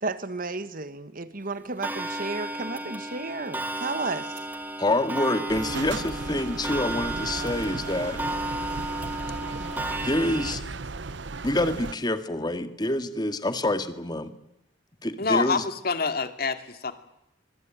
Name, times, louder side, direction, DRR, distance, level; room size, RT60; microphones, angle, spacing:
voice 1, 0.0-4.4, right 3 dB, 45° right, 12 dB, 1.5 m, -33 dB
Clock, 1.8-10.6, right 1 dB, 10° right, 2.1 m, -33 dB
voice 2, 4.8-8.2 10.0-10.6 11.4-14.3 15.0-15.6, left 1 dB, 20° left, 9 dB, 1.9 m, -27 dB
sound 1, 5.5-11.9, right 3 dB, 65° right, 0.9 m, -36 dB
voice 3, 15.2-16.9, left 4 dB, 50° left, 8 dB, 2.4 m, -27 dB
25.0 x 23.0 x 9.2 m, 0.85 s
head